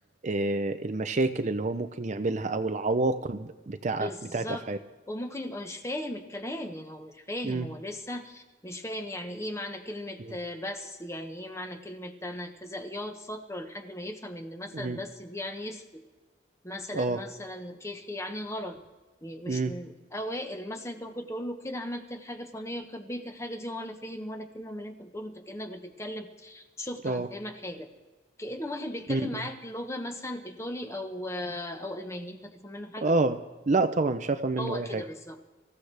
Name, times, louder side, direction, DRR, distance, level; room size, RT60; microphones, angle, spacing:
voice 1, 0.2-4.8 7.4-7.7 10.2-10.3 14.7-15.0 16.9-17.2 19.5-19.7 27.0-27.3 29.1-29.3 33.0-33.4 33.7-35.0, right 3 dB, 40° right, 9 dB, 0.5 m, -28 dB
voice 2, 4.0-4.6 5.1-16.0 16.6-18.8 19.2-27.9 28.4-33.1 34.6-35.5, left 1 dB, 15° left, 5 dB, 1.1 m, -37 dB
25.5 x 15.0 x 3.4 m, 1.2 s
head